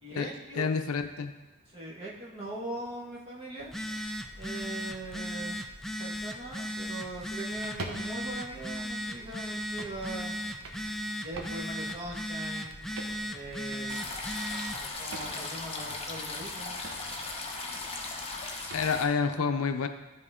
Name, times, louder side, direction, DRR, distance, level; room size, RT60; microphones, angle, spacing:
voice 1, 0.0-0.7 1.7-3.8 4.4-5.6 6.0-10.4 11.2-12.8 13.3-14.3 14.8-16.8, right 1 dB, 25° right, -5 dB, 1.7 m, -41 dB
voice 2, 0.6-1.3 18.7-19.9, left 5 dB, 75° left, 8 dB, 0.5 m, -28 dB
Telephone, 3.6-14.9, equal, ahead, 0.3 m, -37 dB
sound 1, 7.5-19.1, right 2 dB, 65° right, 1.0 m, -48 dB
sound 2, 13.9-19.0, left 3 dB, 30° left, 0.9 m, -37 dB
12.5 x 4.2 x 3.7 m, 1.2 s
head